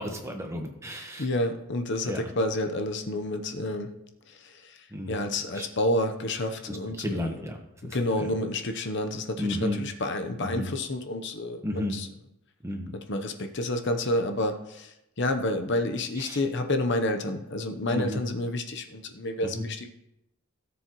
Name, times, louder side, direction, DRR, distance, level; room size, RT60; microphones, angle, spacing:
voice 1, 0.0-1.3 2.0-2.2 4.9-5.1 5.5-5.7 6.7-7.6 7.8-8.3 9.4-9.8 10.4-10.7 11.6-12.0 12.6-12.9 16.2-16.4 17.9-18.2 19.4-19.6, left 1 dB, 10° right, 3 dB, 1.2 m, -32 dB
voice 2, 1.2-3.9 4.3-7.4 7.8-12.1 12.9-19.9, left 1 dB, 55° left, 6 dB, 0.8 m, -29 dB
17.0 x 7.1 x 3.1 m, 0.85 s
head